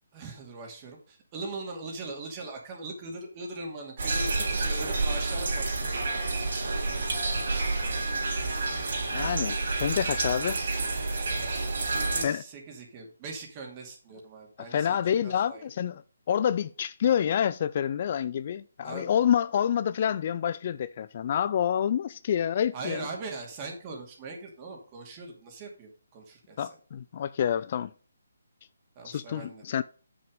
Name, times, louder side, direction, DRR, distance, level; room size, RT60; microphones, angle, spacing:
voice 1, 0.1-5.6 6.6-7.1 7.4-8.1 11.5-15.7 18.8-19.1 22.7-26.7 29.0-29.6, right 3 dB, 25° right, 2.3 m, -41 dB
sound 1, 4.0-12.2, right 3 dB, 60° right, 3.3 m, -29 dB
voice 2, 9.1-10.6 12.2-12.4 14.7-16.0 16.3-23.0 26.6-27.9 29.0-29.8, left 9 dB, 40° left, 0.3 m, -28 dB
7.8 x 6.2 x 5.2 m
hypercardioid pair, 160°, 0 cm